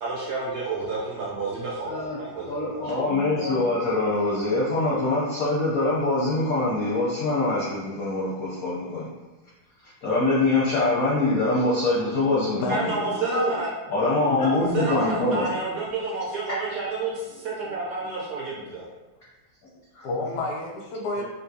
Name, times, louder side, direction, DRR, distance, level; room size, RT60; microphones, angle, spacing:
voice 1, 0.0-2.9 12.7-13.7 14.4-18.8, right 3 dB, 65° right, -5 dB, 1.0 m, -30 dB
voice 2, 1.8-2.2 2.5-9.1 9.8-12.9 13.9-15.5 19.9-20.1 21.2-21.3, left 2 dB, 70° left, -8 dB, 0.8 m, -24 dB
voice 3, 12.5-13.5 14.3-14.4 20.0-21.2, left 2 dB, 85° left, 0 dB, 1.5 m, -30 dB
3.4 x 2.7 x 2.7 m, 1.2 s
omnidirectional pair, 2.2 m